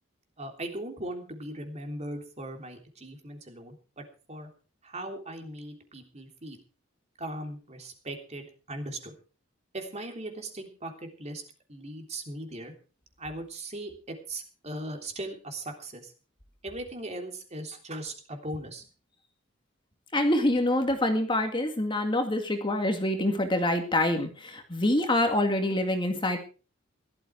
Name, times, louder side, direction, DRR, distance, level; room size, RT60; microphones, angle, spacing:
voice 1, 0.4-4.5 4.8-6.6 7.2-9.1 9.7-11.4 11.7-12.7 13.2-16.1 16.6-18.8, right 1 dB, 35° right, 4 dB, 3.4 m, -39 dB
voice 2, 20.1-26.4, left 1 dB, 25° left, 5 dB, 2.1 m, -26 dB
16.5 x 13.0 x 4.7 m, 0.36 s
head